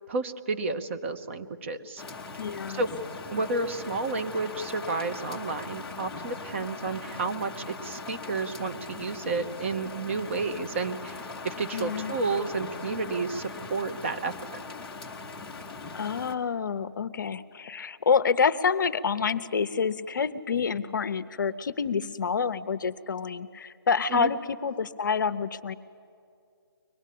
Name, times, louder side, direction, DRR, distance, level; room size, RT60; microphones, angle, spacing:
voice 1, 0.1-2.0 2.7-2.9 3.3-14.3 24.1-24.3, right 3 dB, 30° right, 8 dB, 0.8 m, -31 dB
Rain, 2.0-16.3, left 4 dB, 5° left, 0.7 m, -40 dB
voice 2, 2.4-2.8 11.7-12.2 15.9-25.7, left 6 dB, 50° left, 13 dB, 0.7 m, -27 dB
24.0 x 20.0 x 8.5 m, 2.4 s
hypercardioid pair, 165°, 13 cm